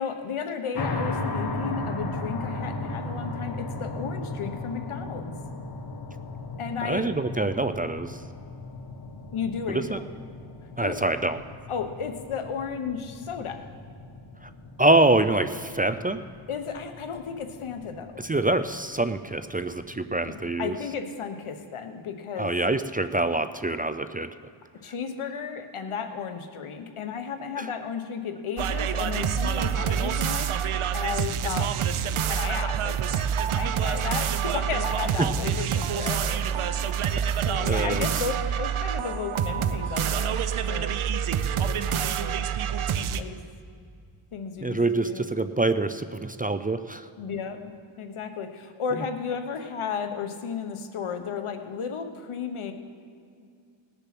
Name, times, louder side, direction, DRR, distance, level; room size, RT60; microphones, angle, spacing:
voice 1, 0.0-5.3 6.6-7.1 9.3-10.0 10.8-11.0 11.7-13.7 16.5-18.2 20.3-22.5 24.8-30.5 30.9-31.7 32.3-37.1 37.4-40.9 41.6-42.5 43.2-43.4 44.3-45.2 47.2-52.7, left 6 dB, 90° left, 7 dB, 1.1 m, -34 dB
sound 1, 0.7-20.5, left 2 dB, 50° left, 1.4 m, -37 dB
voice 2, 6.8-8.2 9.7-10.0 10.8-11.4 14.4-14.5 14.8-16.2 18.2-20.8 22.4-24.3 27.6-27.7 35.2-35.3 37.7-38.0 40.8-40.9 44.6-47.1, right 2 dB, 20° right, 11 dB, 0.4 m, -25 dB
sound 2, 28.6-43.2, right 8 dB, 85° right, 0.6 m, -27 dB
19.0 x 6.8 x 5.9 m, 2.3 s
wide cardioid pair, 75°, 48 cm